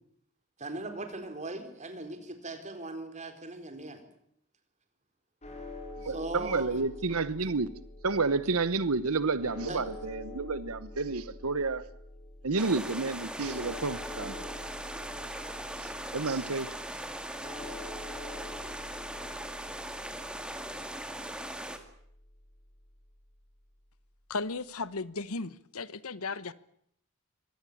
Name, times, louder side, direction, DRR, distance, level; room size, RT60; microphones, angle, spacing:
voice 1, 0.6-4.0 6.0-6.8 9.7-9.8, right 2 dB, 35° right, 4.3 m, -39 dB
sound 1, 5.4-23.6, left 2 dB, 30° left, 5.3 m, -47 dB
voice 2, 6.4-7.7 8.0-11.8 12.4-14.3 15.5-15.6 16.1-16.7, right 3 dB, 80° right, 1.1 m, -30 dB
sound 2, 12.6-21.8, right 1 dB, 5° right, 2.3 m, -40 dB
voice 3, 24.3-26.5, left 3 dB, 80° left, 1.1 m, -35 dB
24.5 x 18.0 x 8.7 m
head